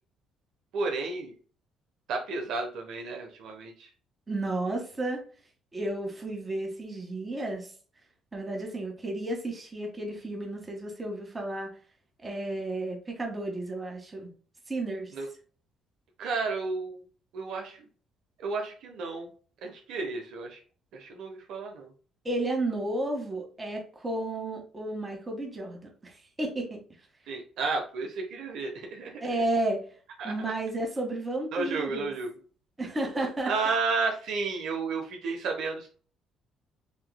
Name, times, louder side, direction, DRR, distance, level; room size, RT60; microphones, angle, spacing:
voice 1, 0.7-1.3 2.1-3.9 15.1-15.3 16.2-17.0 17.3-17.8 18.4-19.3 19.6-20.6 20.9-21.9 27.3-29.2 30.2-30.3 31.5-32.3 33.4-35.9, right 4 dB, 75° right, 2 dB, 1.0 m, -32 dB
voice 2, 4.3-5.2 5.7-7.7 8.3-11.7 12.2-14.3 14.7-15.1 22.2-26.8 29.2-29.9 30.2-32.1 32.8-33.5, right 2 dB, 25° right, 1 dB, 1.8 m, -32 dB
6.8 x 3.0 x 2.3 m, 0.41 s
cardioid pair, 85°, 0 cm